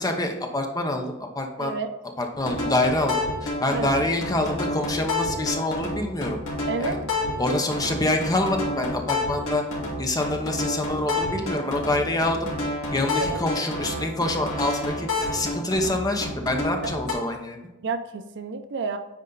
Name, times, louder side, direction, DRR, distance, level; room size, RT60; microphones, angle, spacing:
voice 1, 0.0-1.8 2.2-6.4 6.8-7.0 7.4-9.6 10.0-12.5 12.9-17.6, left 1 dB, 15° left, 3 dB, 0.8 m, -26 dB
voice 2, 1.6-1.9 3.7-3.9 6.7-7.0 13.1-13.4 17.8-19.0, right 4 dB, 55° right, 8 dB, 0.6 m, -30 dB
sound 1, 2.3-17.1, left 2 dB, 65° left, 2.7 m, -29 dB
9.6 x 4.1 x 3.9 m, 1.0 s
head